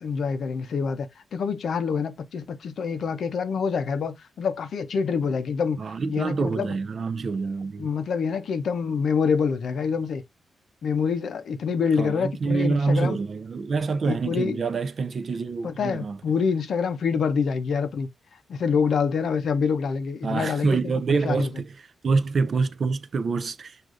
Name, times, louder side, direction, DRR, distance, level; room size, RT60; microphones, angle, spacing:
voice 1, 0.0-5.8 6.1-6.7 7.8-10.2 10.8-13.2 14.0-14.6 15.6-18.1 18.5-20.8 21.1-21.5, left 6 dB, 60° left, 0.5 m, -26 dB
voice 2, 5.8-7.9 12.0-16.2 20.2-23.8, right 4 dB, 40° right, 0.3 m, -26 dB
6.2 x 2.4 x 2.4 m
wide cardioid pair, 175°, 0 cm